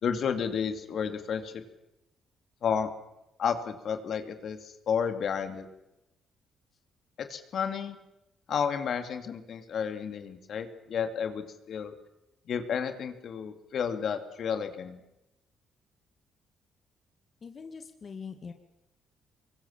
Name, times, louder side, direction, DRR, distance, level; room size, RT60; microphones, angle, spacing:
voice 1, 0.0-1.6 2.6-2.9 3.4-5.7 7.2-8.0 8.5-11.9 12.5-15.0, left 7 dB, 60° left, 7 dB, 2.5 m, -31 dB
voice 2, 17.4-18.5, left 5 dB, 45° left, 6 dB, 2.1 m, -42 dB
25.0 x 23.0 x 7.3 m, 0.93 s
cardioid pair, 90°, 0 cm